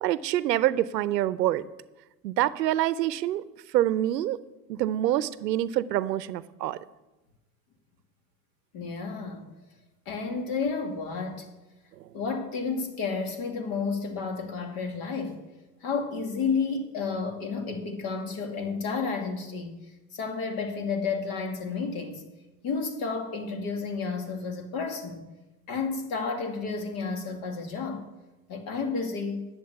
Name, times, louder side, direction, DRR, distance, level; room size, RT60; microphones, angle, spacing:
voice 1, 0.0-1.7 2.2-3.4 3.7-4.4 4.7-6.8, right 13 dB, 85° right, 0.7 m, -26 dB
voice 2, 8.7-9.5 10.1-11.5 12.1-15.4 15.8-19.8 20.1-22.2 22.6-25.2 25.7-28.0 28.5-29.5, left 4 dB, 45° left, 2.4 m, -31 dB
10.5 x 7.4 x 8.1 m
hypercardioid pair, 105°, 48 cm